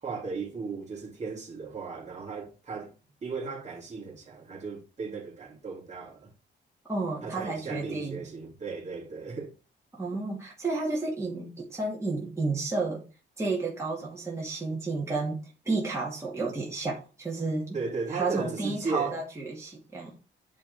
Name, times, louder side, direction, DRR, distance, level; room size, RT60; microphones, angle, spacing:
voice 1, 0.0-2.9 3.2-6.3 7.2-9.5 17.7-19.1, right 4 dB, 35° right, 2.9 m, -36 dB
voice 2, 6.9-8.2 9.9-13.1 13.4-17.8 18.1-20.2, right 3 dB, 15° right, 2.3 m, -31 dB
9.7 x 3.7 x 4.8 m
cardioid pair, 125°, 19 cm